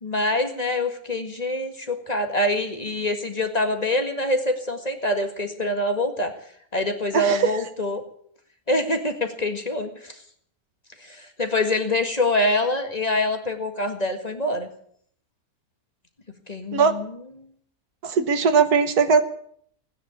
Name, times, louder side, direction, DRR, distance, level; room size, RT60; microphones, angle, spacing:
voice 1, 0.0-6.3 6.7-8.0 8.7-10.2 11.0-14.7 16.5-17.1, left 1 dB, 25° left, 5 dB, 1.8 m, -25 dB
voice 2, 7.1-7.6 16.7-16.9 18.0-19.2, right 5 dB, 85° right, 10 dB, 1.8 m, -19 dB
17.5 x 10.0 x 8.4 m, 0.63 s
omnidirectional pair, 1.6 m